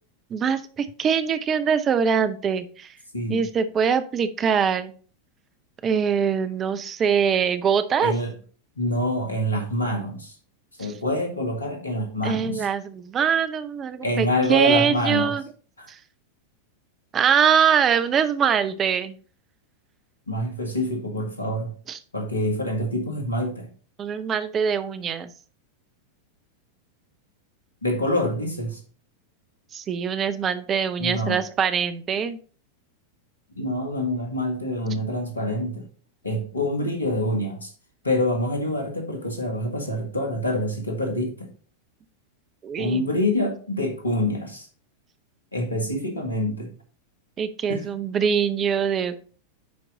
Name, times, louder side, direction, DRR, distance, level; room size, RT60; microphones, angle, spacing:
voice 1, 0.3-2.9 3.3-4.9 5.8-8.1 12.2-15.4 15.9-16.0 17.1-19.2 21.9-22.0 24.0-25.3 29.7-32.4 42.6-43.0 47.4-49.2, right 7 dB, 25° right, 11 dB, 0.7 m, -23 dB
voice 2, 8.0-8.3 8.8-10.3 10.8-12.7 14.0-15.3 15.8-15.9 20.3-21.7 22.1-23.7 27.8-28.8 31.0-31.4 33.5-35.9 36.2-37.7 38.0-41.5 42.8-44.7 45.5-46.7 47.7-47.9, left 1 dB, 80° left, 4 dB, 1.7 m, -26 dB
9.5 x 4.6 x 3.8 m, 0.41 s
figure-of-eight pair, 90°, 0 cm